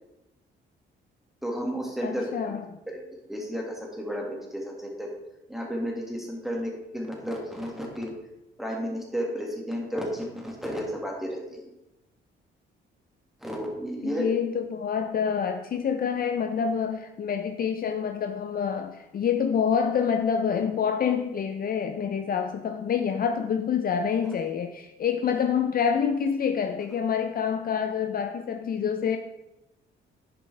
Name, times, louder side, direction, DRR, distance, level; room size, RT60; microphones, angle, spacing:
voice 1, 1.4-2.5 2.9-3.0 3.3-5.1 5.5-8.1 8.6-11.7 13.4-14.3, equal, ahead, -1 dB, 2.2 m, -32 dB
voice 2, 2.0-2.6 14.0-29.2, left 7 dB, 45° left, 6 dB, 0.6 m, -27 dB
11.0 x 5.2 x 3.4 m, 0.93 s
cardioid pair, 90°, 20 cm